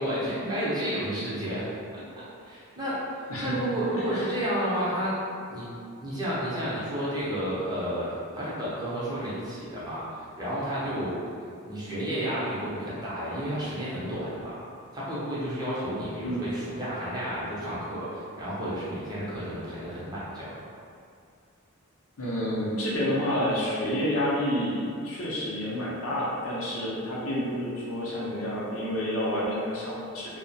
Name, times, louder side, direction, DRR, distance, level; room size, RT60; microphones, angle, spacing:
voice 1, 0.0-1.7 1.9-5.2 5.5-5.7 6.0-11.2 11.6-14.6 14.9-20.5, equal, 20° right, -9 dB, 0.5 m, -31 dB
voice 2, 3.3-4.2 16.2-16.4 22.2-30.4, equal, 70° left, -6 dB, 0.6 m, -29 dB
2.2 x 2.0 x 2.7 m, 2.3 s
head